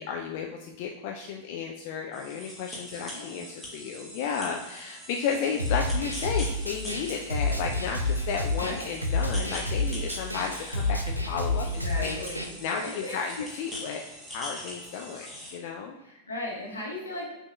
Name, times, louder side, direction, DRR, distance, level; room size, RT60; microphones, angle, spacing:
voice 1, 0.0-12.2 12.6-14.0 14.3-15.3 15.5-16.0, left 6 dB, 50° left, 1 dB, 0.3 m, -33 dB
sound 1, 2.1-15.6, left 1 dB, ahead, 1.0 m, -43 dB
voice 2, 2.9-3.4 8.6-8.9 11.6-13.3 16.0-17.3, left 1 dB, 80° left, -3 dB, 1.0 m, -38 dB
Snare drum, 5.6-12.4, left 2 dB, 90° right, 0.3 m, -29 dB
5.9 x 2.6 x 2.2 m, 0.93 s
figure-of-eight pair, 90°, 0 cm